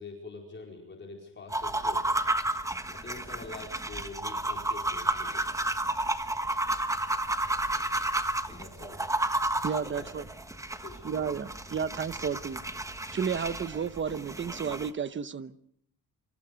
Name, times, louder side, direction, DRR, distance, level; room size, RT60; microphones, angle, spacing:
voice 1, 0.0-2.1 2.9-5.4 8.5-9.0 9.8-10.0 10.7-11.1, left 3 dB, 25° left, 4.5 m, -45 dB
sound 1, 1.5-14.9, right 2 dB, 5° right, 1.3 m, -32 dB
voice 2, 9.6-10.2 11.0-12.6 13.1-15.5, right 6 dB, 25° right, 1.0 m, -32 dB
28.0 x 26.5 x 5.2 m
cardioid pair, 160°, 42 cm